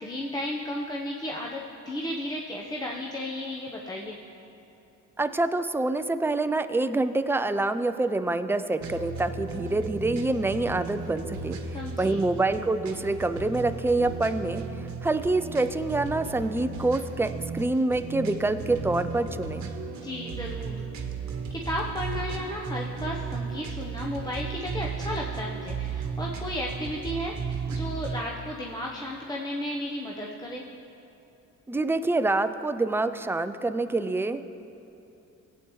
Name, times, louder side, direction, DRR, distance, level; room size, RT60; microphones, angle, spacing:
voice 1, 0.0-4.2 11.7-12.2 20.0-20.9 21.2-30.6, left 1 dB, 15° left, -2 dB, 0.8 m, -34 dB
voice 2, 5.2-19.7 31.7-34.4, right 2 dB, 10° right, 10 dB, 0.4 m, -26 dB
sound 1, 8.8-28.2, right 5 dB, 65° right, 1.1 m, -35 dB
17.0 x 8.3 x 3.1 m, 2.8 s
cardioid pair, 90°, 30 cm